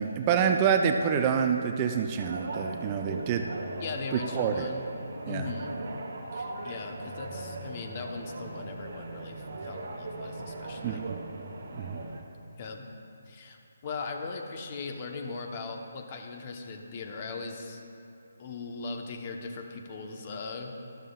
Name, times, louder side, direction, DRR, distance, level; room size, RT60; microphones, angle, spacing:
voice 1, 0.0-3.5 4.3-4.7 5.3-5.5 10.8-11.2 11.8-12.0, right 7 dB, 25° right, 5 dB, 0.5 m, -27 dB
sound 1, 2.2-12.2, right 2 dB, 55° right, 1.1 m, -39 dB
voice 2, 3.8-4.8 5.3-5.8 6.3-11.0 12.6-12.9 13.3-13.6 13.8-17.8 18.4-20.7, left 4 dB, 35° left, 4 dB, 0.9 m, -39 dB
12.5 x 12.5 x 2.4 m, 2.6 s
figure-of-eight pair, 145°, 0 cm